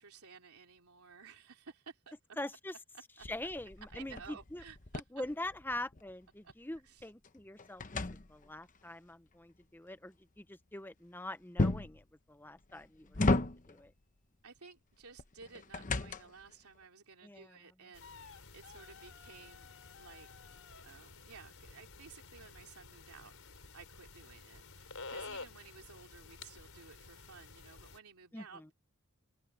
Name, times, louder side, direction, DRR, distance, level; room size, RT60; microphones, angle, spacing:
voice 1, 0.0-2.1 3.2-3.3 3.9-5.0 6.4-6.5 6.8-7.1 14.4-19.7 20.0-20.3 20.8-28.7, right 5 dB, 80° right, 3.2 m, -55 dB
voice 2, 2.4-2.7 3.2-4.6 5.1-13.9 17.2-17.6 28.3-28.7, left 1 dB, 10° left, 0.8 m, -44 dB
sound 1, 3.2-6.1 6.5-8.8 11.6-12.0 12.7-13.9 15.2-16.5, left 2 dB, 35° left, 0.9 m, -34 dB
sound 2, 17.9-28.0, left 4 dB, 65° left, 4.7 m, -51 dB
open air
head